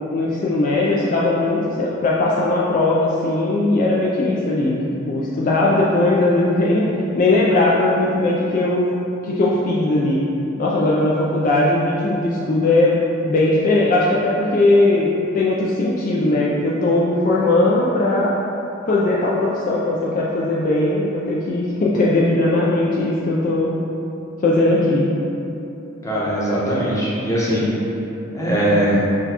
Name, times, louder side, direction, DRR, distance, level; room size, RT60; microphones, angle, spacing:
voice 1, 0.1-6.9 7.2-8.9 9.2-10.2 10.6-13.0 13.2-15.1 15.3-18.3 18.9-23.7 24.4-25.1, left 2 dB, 40° left, -5 dB, 0.3 m, -19 dB
voice 2, 26.0-27.7 28.3-29.0, right 1 dB, 15° left, -8 dB, 0.8 m, -20 dB
6.0 x 2.2 x 2.8 m, 3.0 s
head